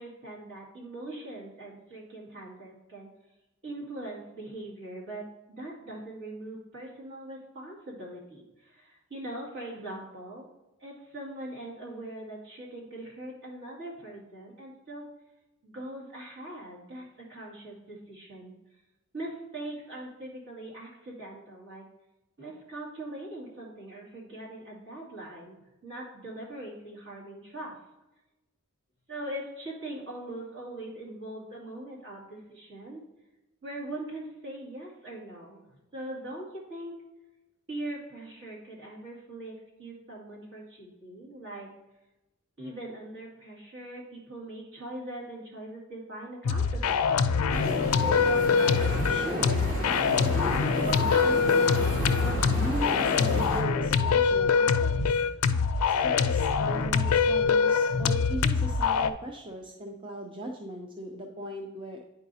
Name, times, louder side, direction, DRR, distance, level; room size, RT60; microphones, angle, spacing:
voice 1, 0.0-3.1 3.6-10.4 10.8-15.1 15.6-18.5 19.1-21.9 22.4-27.7 29.1-33.0 33.6-35.6 35.9-36.9 37.7-41.7 42.6-47.3, right 1 dB, 60° right, -4 dB, 2.3 m, -41 dB
sound 1, 46.4-59.1, left 5 dB, 75° left, 0.4 m, -24 dB
sound 2, 47.5-53.6, equal, 40° right, 1.7 m, -33 dB
voice 2, 48.6-51.7 52.2-55.2 55.9-62.0, right 1 dB, 25° right, 1 dB, 0.5 m, -38 dB
9.8 x 4.8 x 2.7 m, 1.0 s
head